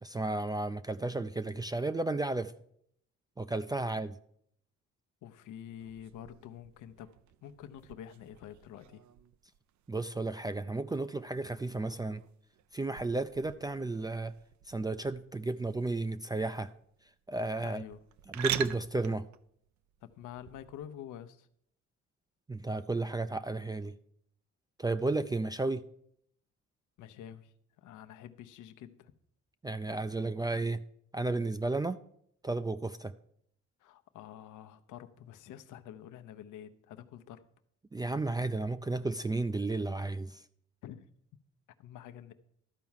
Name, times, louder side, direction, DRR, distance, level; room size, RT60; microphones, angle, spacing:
voice 1, 0.0-2.5 3.4-4.2 9.9-12.2 12.7-14.3 14.7-16.7 17.3-17.8 18.3-19.3 22.5-23.9 24.8-25.8 29.6-30.8 31.1-32.0 32.4-33.1 37.9-40.4, right 2 dB, 15° right, 0.3 m, -33 dB
voice 2, 5.2-7.1 7.4-9.0 17.6-18.0 20.0-21.5 27.0-29.1 33.8-37.4 40.8-41.1 41.8-42.3, left 10 dB, 85° left, 0.8 m, -48 dB
sound 1, 5.8-20.9, right 11 dB, 70° right, 0.5 m, -45 dB
12.5 x 4.6 x 7.2 m
cardioid pair, 90°, 30 cm